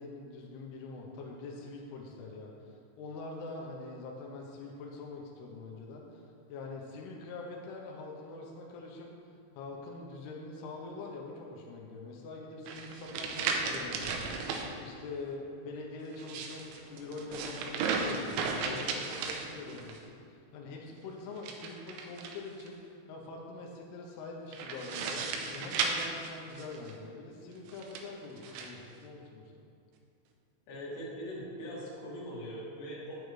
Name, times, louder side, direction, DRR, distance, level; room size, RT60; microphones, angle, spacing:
voice 1, 0.0-6.2 6.5-29.4, left 3 dB, 80° left, -1 dB, 2.3 m, -44 dB
sound 1, 12.7-14.7 16.1-20.0 21.4-22.7 24.5-26.9 27.7-28.7, right 4 dB, 90° right, 3.2 m, -35 dB
voice 2, 30.7-33.2, equal, 65° left, -6 dB, 3.8 m, -41 dB
9.1 x 8.7 x 3.2 m, 2.4 s
omnidirectional pair, 5.7 m